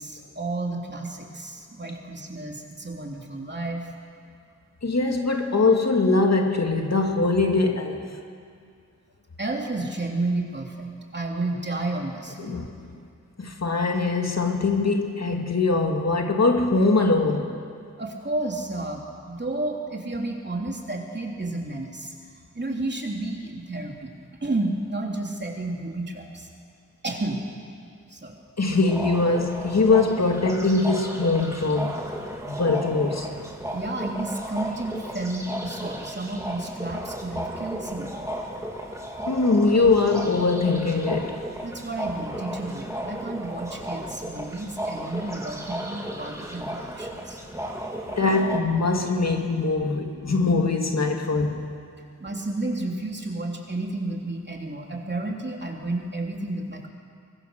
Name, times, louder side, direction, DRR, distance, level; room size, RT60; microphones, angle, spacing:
voice 1, 0.0-3.9 9.4-12.6 18.0-22.1 22.5-24.1 24.4-26.5 27.0-27.4 28.1-28.4 33.7-38.3 41.6-47.4 52.2-56.9, right 2 dB, 40° right, 0 dB, 3.3 m, -31 dB
voice 2, 4.8-8.2 12.4-12.7 13.4-17.6 28.6-32.1 32.5-33.3 39.3-41.4 48.2-51.8, left 3 dB, 65° left, 3 dB, 2.1 m, -22 dB
sound 1, 28.7-48.6, equal, 10° right, 3.0 m, -34 dB
24.0 x 21.5 x 6.6 m, 2.3 s
wide cardioid pair, 70°, 29 cm